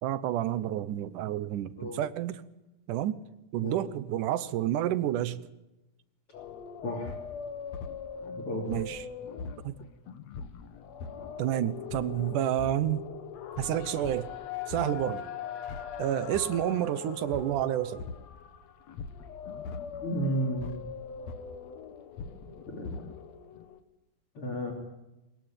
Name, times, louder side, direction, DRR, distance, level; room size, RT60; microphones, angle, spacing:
voice 1, 0.0-2.4 2.9-3.2 3.5-5.4 8.7-9.1 9.6-9.7 11.4-13.1 13.6-14.3 14.7-15.2 16.0-18.0, right 12 dB, 80° right, 2.5 m, -29 dB
sound 1, 6.3-23.8, left 6 dB, 60° left, 2.3 m, -40 dB
voice 2, 20.0-20.8 22.7-23.0 24.4-24.7, right 1 dB, 45° left, 3.8 m, -32 dB
22.0 x 20.0 x 9.0 m
omnidirectional pair, 3.7 m